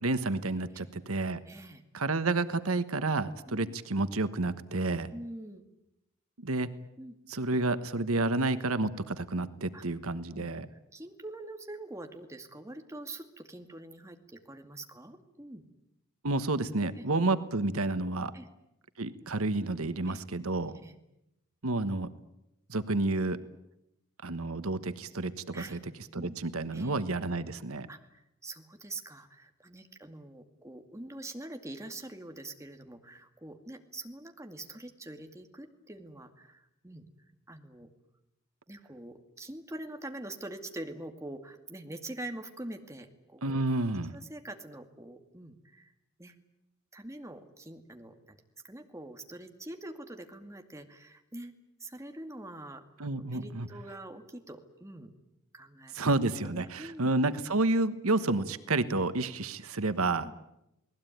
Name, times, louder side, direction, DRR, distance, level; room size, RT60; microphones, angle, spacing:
voice 1, 0.0-1.4 1.9-5.1 6.4-6.7 7.3-10.7 16.2-18.3 19.0-20.7 21.6-22.1 22.7-23.4 24.2-25.8 26.1-27.9 43.4-44.1 53.0-53.7 55.9-60.3, right 2 dB, 85° right, 12 dB, 1.3 m, -30 dB
voice 2, 1.5-1.8 3.5-3.7 5.1-5.7 7.0-7.2 9.7-9.9 10.3-15.6 17.0-17.1 18.3-18.5 20.1-20.2 20.7-21.0 25.5-25.8 26.2-26.4 26.7-27.1 27.9-37.0 37.5-37.9 38.7-43.6 44.1-45.9 46.2-46.4 46.9-48.4 48.6-51.5 51.8-55.1 55.5-56.1 56.4-57.1 60.2-60.4, right 1 dB, 15° right, 5 dB, 2.2 m, -45 dB
29.0 x 19.5 x 9.3 m, 0.88 s
head